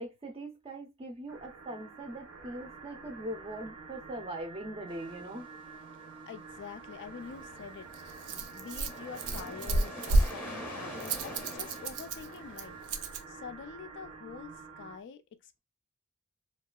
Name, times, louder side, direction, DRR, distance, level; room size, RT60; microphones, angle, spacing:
voice 1, 0.0-5.5, right 1 dB, 25° right, 0.5 m, -41 dB
sound 1, 1.3-15.0, right 4 dB, 70° right, 0.8 m, -48 dB
sound 2, 4.9-12.9, equal, 10° left, 0.7 m, -46 dB
voice 2, 6.3-12.8 13.3-15.6, left 6 dB, 55° left, 0.3 m, -46 dB
Rattle, 7.2-13.2, right 2 dB, 90° right, 0.4 m, -32 dB
2.7 x 2.3 x 2.2 m
head